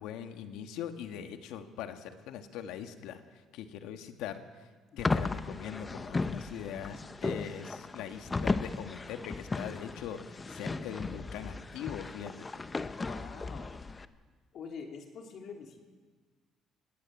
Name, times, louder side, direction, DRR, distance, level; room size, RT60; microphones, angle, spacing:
voice 1, 0.0-4.7 5.0-12.6, left 9 dB, 90° left, 7 dB, 1.6 m, -42 dB
sound 1, 5.0-14.0, left 3 dB, 20° left, 0.7 m, -36 dB
voice 2, 13.0-13.7 14.5-15.8, left 5 dB, 55° left, 2 dB, 3.0 m, -45 dB
19.0 x 16.5 x 8.8 m, 1.5 s
cardioid pair, 125°, 0 cm